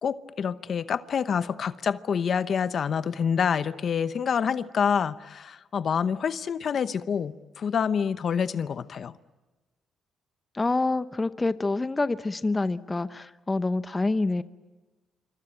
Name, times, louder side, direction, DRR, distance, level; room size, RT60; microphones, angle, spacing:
voice 1, 0.0-9.1, left 7 dB, 55° left, 0.9 m, -27 dB
voice 2, 10.5-14.4, left 3 dB, 20° left, 0.8 m, -27 dB
26.5 x 24.5 x 8.9 m
cardioid pair, 90°, 0 cm